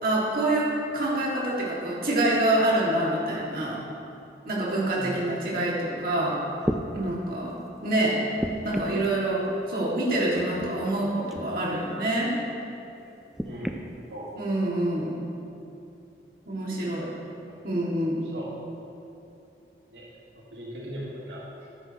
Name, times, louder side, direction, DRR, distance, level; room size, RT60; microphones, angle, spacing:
voice 1, 0.0-3.8 4.4-6.4 6.9-8.2 8.6-12.3 14.4-15.2 16.5-17.1 17.6-18.2, right 1 dB, 50° right, -5 dB, 2.1 m, -26 dB
sound 1, 6.1-6.2 6.6-6.9 8.4-9.1 10.3-10.7 11.3-11.5 13.3-13.8 14.7-14.8, equal, ahead, 0.4 m, -31 dB
voice 2, 13.4-13.8 14.1-14.3 17.5-17.6 18.2-18.5 19.9-20.1 20.3-21.7, equal, 85° right, -5 dB, 1.8 m, -39 dB
12.5 x 11.0 x 3.0 m, 2.8 s
head